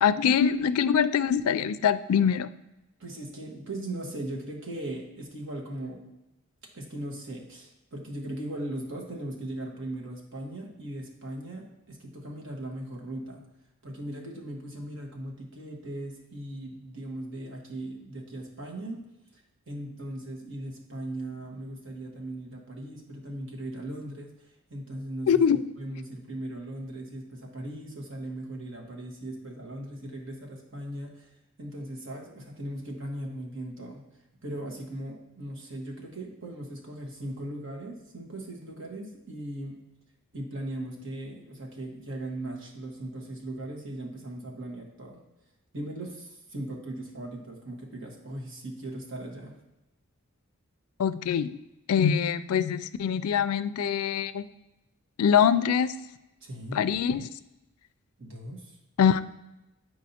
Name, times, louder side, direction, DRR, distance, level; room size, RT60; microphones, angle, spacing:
voice 1, 0.0-2.5 25.3-25.6 51.0-51.6 51.9-54.4 55.2-55.9 56.7-57.3 59.0-59.2, left 7 dB, 85° left, 14 dB, 0.4 m, -23 dB
voice 2, 3.0-6.0 6.7-13.4 13.8-19.1 19.3-19.4 19.7-25.4 25.8-31.3 31.6-34.0 34.4-39.8 40.3-45.2 45.7-49.6 56.4-56.8 58.2-58.8, right 1 dB, 60° right, 0 dB, 1.4 m, -38 dB
9.2 x 4.7 x 2.8 m, 0.95 s
head